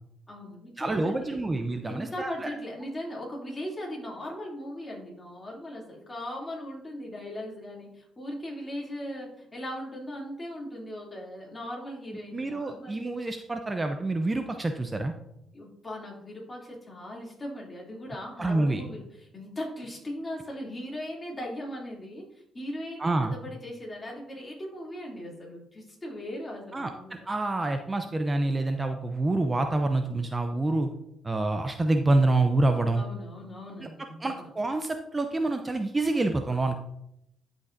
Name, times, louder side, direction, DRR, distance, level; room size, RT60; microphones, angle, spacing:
voice 1, 0.3-1.4 1.9-13.1 15.5-22.3 22.5-27.3 32.9-34.5, left 1 dB, 25° left, -3 dB, 2.6 m, -39 dB
voice 2, 0.8-2.5 12.3-15.1 18.4-18.8 23.0-23.3 26.7-30.9 31.2-33.0 33.8-33.9 34.2-36.7, right 2 dB, 20° right, 6 dB, 0.5 m, -27 dB
11.5 x 5.1 x 2.6 m, 0.79 s
cardioid pair, 90°, 0 cm